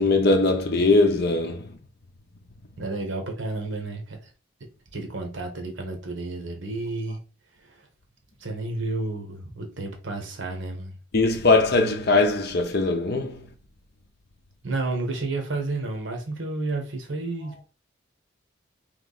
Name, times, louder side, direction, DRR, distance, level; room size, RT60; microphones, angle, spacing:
voice 1, 0.0-1.7 11.1-13.5, left 3 dB, 55° left, 0.6 m, -21 dB
voice 2, 2.8-4.3 4.9-7.2 7.6-7.9 8.4-10.9 14.6-17.6, right 2 dB, 75° right, 1.2 m, -31 dB
3.6 x 3.1 x 4.0 m
head